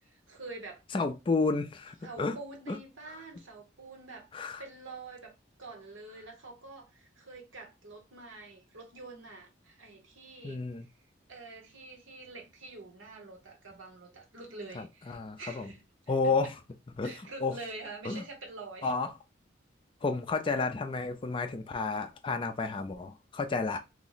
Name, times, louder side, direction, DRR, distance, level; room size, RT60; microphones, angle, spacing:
voice 1, 0.0-0.8 2.0-4.3 4.6-10.6 11.3-16.5 17.0-18.9, right 3 dB, 90° right, 1.0 m, -46 dB
voice 2, 0.9-2.4 2.7-2.8 3.1-3.2 4.3-4.6 10.4-10.9 14.8-15.7 16.1-16.5 17.0-17.1 17.4-17.6 18.1-18.2 18.8-19.1 20.0-23.8, left 4 dB, 25° left, 0.3 m, -31 dB
2.8 x 2.0 x 3.9 m
head